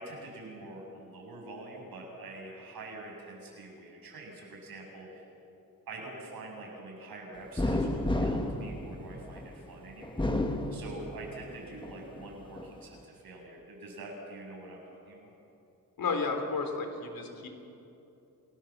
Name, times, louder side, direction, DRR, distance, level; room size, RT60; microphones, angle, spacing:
voice 1, 0.0-5.3 5.9-15.3, right 2 dB, 75° right, -1 dB, 7.3 m, -45 dB
sound 1, 7.6-9.5 10.0-11.4 11.8-12.7, left 1 dB, 15° left, 1.8 m, -31 dB
voice 2, 16.0-17.5, left 4 dB, 70° left, 4 dB, 3.6 m, -32 dB
29.0 x 18.5 x 7.4 m, 2.9 s
cardioid pair, 110°, 36 cm